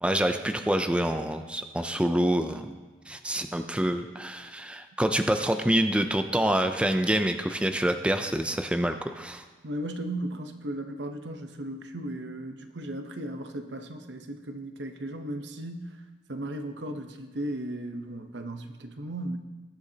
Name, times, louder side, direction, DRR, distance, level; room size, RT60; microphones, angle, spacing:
voice 1, 0.0-2.7 3.1-9.4, right 1 dB, 5° right, 7 dB, 0.5 m, -26 dB
voice 2, 9.6-16.0 16.3-19.4, right 1 dB, 80° right, 6 dB, 0.9 m, -36 dB
20.5 x 7.9 x 2.8 m, 1.3 s
head